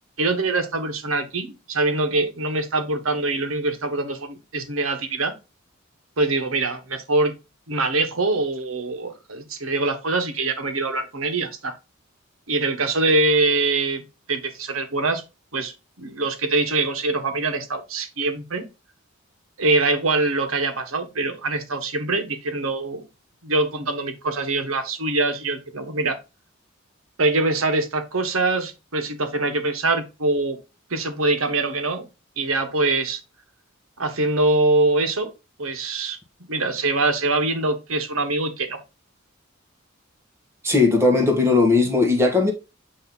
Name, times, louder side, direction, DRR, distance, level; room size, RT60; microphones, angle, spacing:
voice 1, 0.2-5.3 6.2-7.3 7.7-11.7 12.5-15.2 15.5-15.7 16.0-18.6 19.6-23.1 23.4-26.2 27.2-30.6 30.9-32.1 32.4-33.2 34.0-35.3 35.6-36.2 36.5-38.8, right 2 dB, 80° right, 1.4 m, -23 dB
voice 2, 40.6-42.5, left 3 dB, 15° right, 1.5 m, -18 dB
8.5 x 3.1 x 3.8 m
head